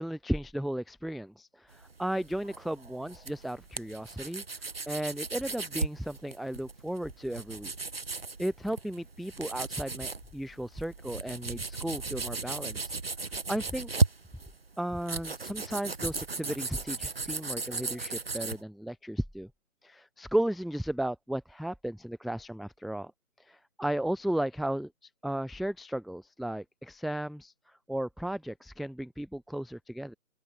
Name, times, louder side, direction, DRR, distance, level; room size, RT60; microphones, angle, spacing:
voice 1, 0.0-7.7 8.4-12.9 13.5-13.9 14.8-19.5 19.8-23.1 23.4-30.1, right 1 dB, ahead, 0.6 m, -35 dB
sound 1, 1.7-18.6, right 3 dB, 40° right, 1.1 m, -36 dB
open air
hypercardioid pair, 180°, 44 cm